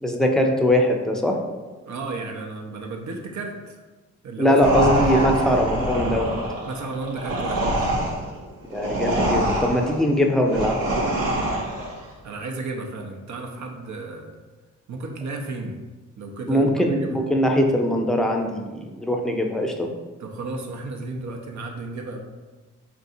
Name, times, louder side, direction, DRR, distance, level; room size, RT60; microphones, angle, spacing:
voice 1, 0.0-1.4 4.4-6.3 8.7-10.8 16.5-19.9, equal, ahead, 2 dB, 0.5 m, -21 dB
voice 2, 1.8-3.8 4.2-5.6 6.6-7.9 12.2-14.3 14.9-15.8 16.2-17.2 20.2-22.2, right 3 dB, 55° right, 2 dB, 0.6 m, -33 dB
sound 1, 4.6-12.0, right 1 dB, 90° right, 0.7 m, -24 dB
4.0 x 2.6 x 2.6 m, 1.3 s
supercardioid pair, 50°, 33 cm